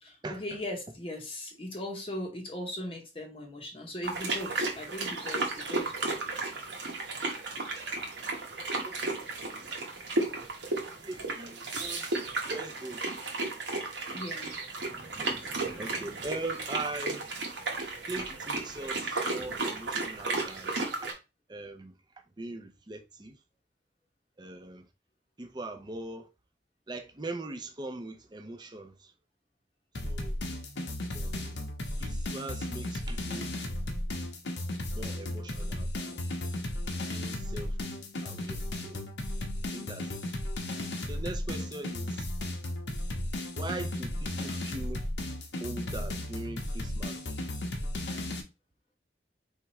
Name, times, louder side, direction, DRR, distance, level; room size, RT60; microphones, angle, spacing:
voice 1, 0.0-6.2 14.1-14.5 41.5-41.8, left 1 dB, 30° left, 0.8 m, -39 dB
sound 1, 4.0-21.1, right 3 dB, 90° right, 1.2 m, -34 dB
voice 2, 8.8-9.2 10.9-12.2 12.5-13.3 15.2-17.4 18.1-21.1 21.5-22.0 22.4-23.4 24.4-24.9 25.4-26.3 26.9-29.1 30.0-30.4 31.1-31.6 32.0-33.5 34.9-36.2 37.1-37.8 38.2-39.1 39.7-40.1 41.1-42.3 43.6-45.1 45.6-47.3, right 2 dB, 25° right, 0.6 m, -41 dB
sound 2, 29.9-48.4, left 1 dB, 80° left, 0.9 m, -35 dB
4.6 x 3.5 x 3.0 m
head